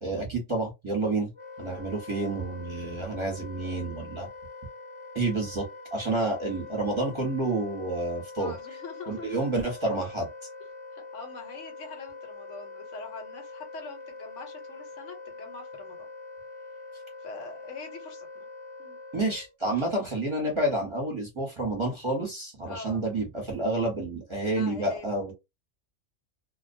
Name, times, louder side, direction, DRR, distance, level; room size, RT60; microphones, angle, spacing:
voice 1, 0.0-1.3 1.6-4.3 5.1-5.6 5.9-8.5 9.1-10.3 19.1-25.3, right 2 dB, 30° right, 0.8 m, -29 dB
Wind instrument woodwind instrument, 1.3-19.6, left 3 dB, 35° left, 0.6 m, -44 dB
voice 2, 8.4-9.5 10.9-16.1 17.2-18.5 18.8-19.0 22.6-23.0 24.3-25.1, left 4 dB, 80° left, 1.1 m, -44 dB
2.3 x 2.1 x 2.5 m
omnidirectional pair, 1.2 m